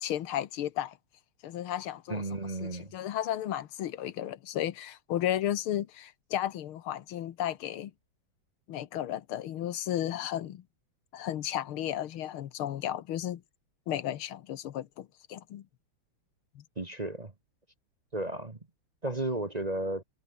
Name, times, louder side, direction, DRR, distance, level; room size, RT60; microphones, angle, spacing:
voice 1, 0.0-1.0 1.4-2.2 2.6-7.9 8.7-10.6 11.1-13.4 13.9-15.7 16.6-16.7, left 11 dB, 85° left, 2.0 m, -34 dB
voice 2, 2.1-2.9 16.8-17.3 18.1-18.6 19.0-20.0, right 2 dB, 20° right, 1.3 m, -33 dB
omnidirectional pair, 2.3 m